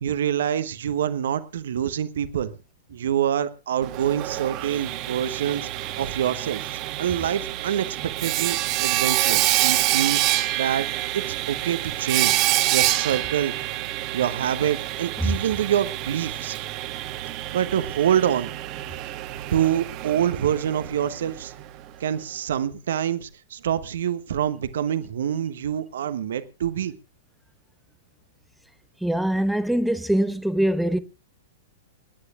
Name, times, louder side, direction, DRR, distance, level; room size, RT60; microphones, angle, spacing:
voice 1, 0.0-2.5 2.9-10.9 11.1-12.4 12.7-13.5 14.1-16.6 17.5-18.5 19.3-21.5 22.0-26.9, right 9 dB, 65° right, 1.0 m, -26 dB
Sawing, 3.8-21.6, right 16 dB, 40° right, 1.2 m, -27 dB
voice 2, 29.0-31.0, right 1 dB, ahead, 0.8 m, -23 dB
28.5 x 9.8 x 2.5 m
figure-of-eight pair, 105°, 0 cm